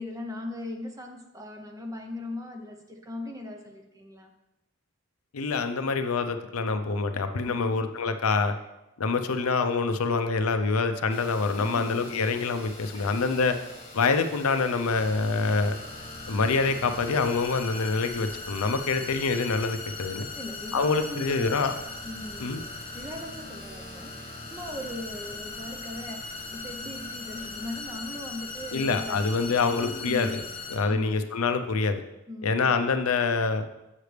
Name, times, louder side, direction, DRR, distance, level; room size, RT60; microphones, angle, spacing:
voice 1, 0.0-4.3 7.4-7.9 11.6-12.2 13.0-13.2 20.3-21.7 22.0-30.4 30.9-31.3 32.3-33.0, left 1 dB, 15° right, 3 dB, 0.8 m, -39 dB
voice 2, 5.3-8.6 9.0-13.6 13.9-15.7 16.3-20.3 20.7-21.7 22.4-22.6 28.7-30.4 30.7-32.0 32.4-33.7, left 4 dB, 85° left, 8 dB, 0.6 m, -26 dB
sound 1, 11.1-30.8, left 3 dB, 25° left, 1.4 m, -40 dB
7.4 x 6.6 x 3.3 m, 0.93 s
head